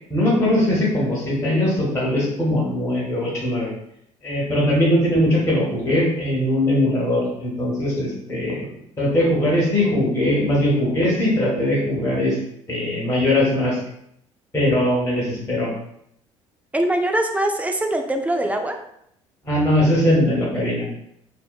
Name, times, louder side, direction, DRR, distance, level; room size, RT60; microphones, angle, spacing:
voice 1, 0.1-3.7 4.2-8.6 9.0-12.4 12.7-13.8 14.5-15.7 19.4-20.9, left 1 dB, 15° left, -5 dB, 1.0 m, -20 dB
voice 2, 16.7-18.8, right 1 dB, 10° right, 4 dB, 0.3 m, -22 dB
2.8 x 2.0 x 2.3 m, 0.73 s
figure-of-eight pair, 55°, 16 cm